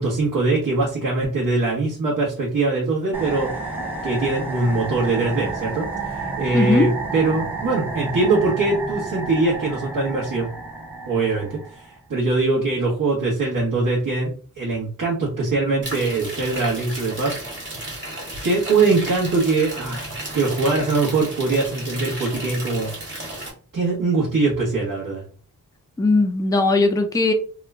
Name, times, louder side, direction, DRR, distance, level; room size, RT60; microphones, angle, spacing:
voice 1, 0.0-3.5 4.0-10.5 11.1-17.3 18.4-22.9 23.7-25.2, right 3 dB, 65° right, -6 dB, 1.2 m, -22 dB
sound 1, 3.1-12.0, right 3 dB, 5° right, 0.8 m, -31 dB
voice 2, 6.5-6.9 26.0-27.3, left 3 dB, 10° left, 6 dB, 0.4 m, -18 dB
sound 2, 15.8-23.5, right 1 dB, 35° right, 1.6 m, -33 dB
2.9 x 2.4 x 3.2 m, 0.40 s
wide cardioid pair, 145°, 35 cm